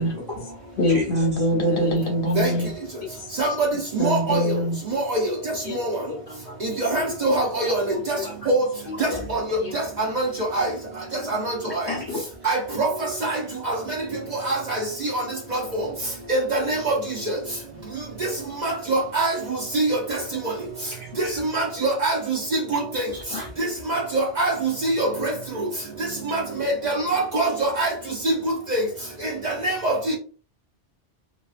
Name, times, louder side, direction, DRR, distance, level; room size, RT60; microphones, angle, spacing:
voice 1, 0.0-1.5 9.1-9.2 11.9-12.2 21.0-21.4 22.7-22.8 23.1-23.7, left 3 dB, 35° left, 0.4 m, -34 dB
voice 2, 0.8-2.7 4.0-4.8 5.7-5.8 6.1-6.2 6.5-6.6 8.2-8.3, equal, 55° left, 0.8 m, -23 dB
voice 3, 3.9-4.4 4.9-5.2 5.7-5.8 6.6-8.2 8.5-8.6 9.0-9.4 9.7-9.8 10.2-10.3 10.5-10.7 11.4-11.5 12.4-12.9 13.2-13.4 13.6-13.8 14.5-14.8 15.5-15.6 16.3-16.9 18.6-19.3 19.7-20.0 21.2-22.8 23.9-25.3 26.3-27.9 28.2-28.8 29.4-30.1, right 2 dB, 45° right, 0.7 m, -23 dB
2.6 x 2.3 x 2.4 m
omnidirectional pair, 1.2 m